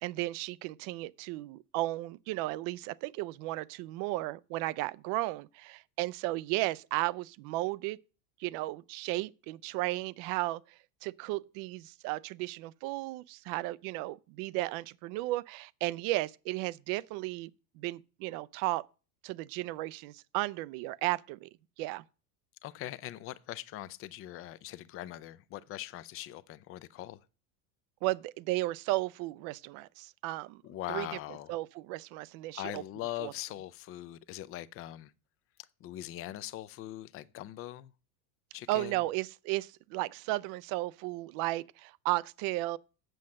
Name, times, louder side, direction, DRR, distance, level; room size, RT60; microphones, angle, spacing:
voice 1, 0.0-8.0 8.4-18.8 19.2-21.5 21.8-22.0 28.0-30.6 30.9-31.1 31.5-32.8 33.2-33.3 38.7-42.8, right 18 dB, 45° right, 0.5 m, -34 dB
voice 2, 22.6-27.2 30.6-31.6 32.5-35.1 35.6-37.9 38.5-39.0, left 14 dB, 30° left, 0.4 m, -41 dB
7.8 x 7.2 x 6.4 m
supercardioid pair, 135°, 49 cm